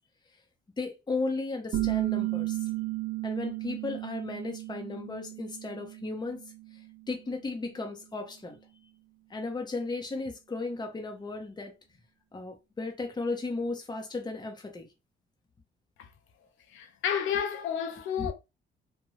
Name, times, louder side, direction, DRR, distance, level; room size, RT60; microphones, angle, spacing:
voice 1, 0.8-2.7 3.2-6.4 6.7-8.6 9.3-11.7 12.3-14.9 18.2-18.3, left 3 dB, 20° left, 0.7 m, -35 dB
sound 1, 1.7-7.1, right 18 dB, 50° right, 0.5 m, -34 dB
voice 2, 16.7-18.3, left 8 dB, 80° left, 0.6 m, -31 dB
2.6 x 2.2 x 3.0 m
cardioid pair, 90°, 20 cm